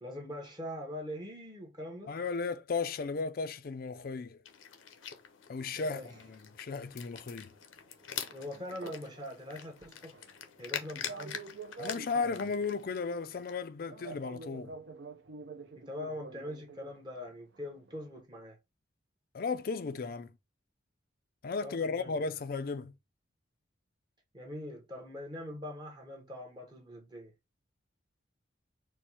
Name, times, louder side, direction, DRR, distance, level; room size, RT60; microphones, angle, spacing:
voice 1, 0.0-2.2 5.7-6.1 8.1-10.2 10.6-11.4 15.8-18.6 21.6-22.3 24.3-27.3, left 1 dB, 20° right, 0.8 m, -43 dB
voice 2, 2.1-4.4 5.5-7.5 11.8-14.7 19.3-20.3 21.4-22.9, left 4 dB, 45° left, 0.4 m, -35 dB
sound 1, 4.4-13.6, left 8 dB, 85° left, 0.7 m, -45 dB
sound 2, 5.8-7.3 7.6-9.3 9.6-17.0 17.5-17.6 17.9-18.2, right 4 dB, 60° right, 0.6 m, -48 dB
4.2 x 2.1 x 4.6 m
head